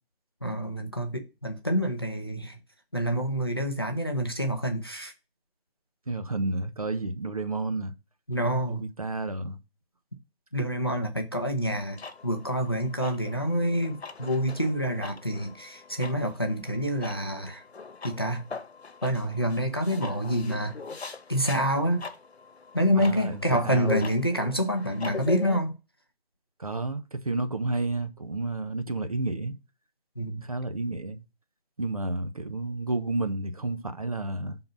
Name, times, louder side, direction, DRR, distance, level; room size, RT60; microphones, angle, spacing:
voice 1, 0.4-2.6 2.9-5.1 8.3-8.9 10.5-17.6 18.0-18.5 19.0-20.8 21.3-22.1 22.7-25.8 30.2-30.5, equal, 25° left, 0.6 m, -27 dB
voice 2, 6.1-7.9 8.7-9.6 23.0-24.1 26.6-29.6 30.4-31.2 31.8-34.6, right 2 dB, 35° right, 0.7 m, -31 dB
sound 1, 11.9-25.6, left 4 dB, 80° left, 1.0 m, -41 dB
5.7 x 3.8 x 5.4 m
figure-of-eight pair, 165°, 31 cm